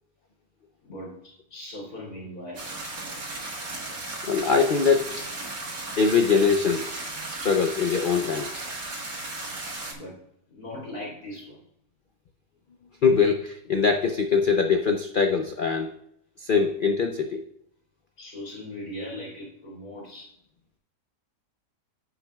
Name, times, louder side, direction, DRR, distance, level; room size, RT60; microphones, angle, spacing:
voice 1, 0.8-2.7 9.9-10.2 10.5-11.6 18.2-20.4, left 1 dB, 60° left, -4 dB, 3.3 m, -39 dB
sound 1, 2.6-9.9, right 2 dB, 85° right, 2.7 m, -35 dB
voice 2, 4.2-5.2 6.0-6.9 7.4-8.5 9.4-9.6 13.0-15.9 16.4-17.4, left 5 dB, 75° left, 5 dB, 0.4 m, -22 dB
15.0 x 6.1 x 2.3 m, 0.73 s
omnidirectional pair, 1.8 m